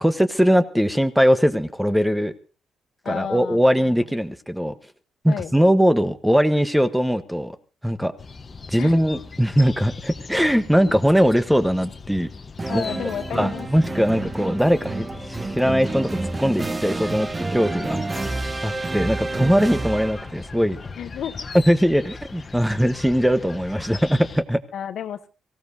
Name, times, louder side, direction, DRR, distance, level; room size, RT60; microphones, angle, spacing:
voice 1, 0.0-2.3 3.0-4.7 5.2-7.6 7.8-8.1 8.7-12.3 12.7-16.1 16.4-18.3 18.6-20.8 21.5-24.6, equal, 5° right, 10 dB, 1.1 m, -20 dB
voice 2, 3.0-3.9 5.3-5.5 8.8-9.0 12.7-13.7 15.7-15.8 17.8-18.5 21.0-21.5 24.7-25.3, left 9 dB, 75° left, 9 dB, 1.0 m, -32 dB
sound 1, 8.2-24.4, left 4 dB, 35° left, 1.1 m, -39 dB
sound 2, 12.6-20.4, right 2 dB, 20° right, 0.9 m, -29 dB
24.0 x 15.5 x 2.7 m, 0.35 s
cardioid pair, 90°, 0 cm